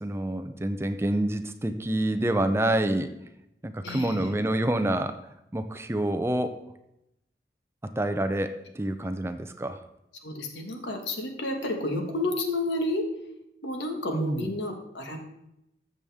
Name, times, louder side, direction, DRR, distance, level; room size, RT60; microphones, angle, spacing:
voice 1, 0.0-3.1 3.6-6.6 7.8-9.8 14.1-14.5, right 1 dB, 15° right, 9 dB, 0.5 m, -28 dB
voice 2, 3.8-4.2 10.2-13.0 13.6-15.2, left 1 dB, 90° left, 4 dB, 1.6 m, -30 dB
14.0 x 7.0 x 3.5 m, 0.84 s
head